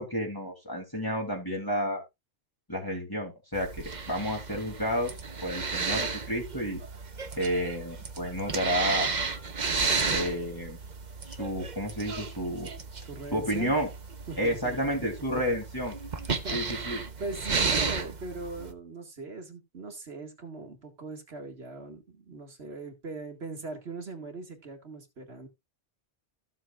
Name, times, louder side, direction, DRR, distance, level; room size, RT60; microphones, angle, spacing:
voice 1, 0.0-2.0 2.7-5.1 5.4-6.8 7.4-9.1 10.1-10.8 11.3-12.7 13.3-13.9 14.4-15.9 16.5-17.0, equal, 20° left, 3.1 m, -31 dB
sound 1, 3.5-18.7, right 4 dB, 45° right, 1.1 m, -33 dB
voice 2, 13.0-13.7 14.3-14.9 16.3-25.5, right 3 dB, 75° right, 2.3 m, -40 dB
14.5 x 7.6 x 2.5 m
omnidirectional pair, 1.1 m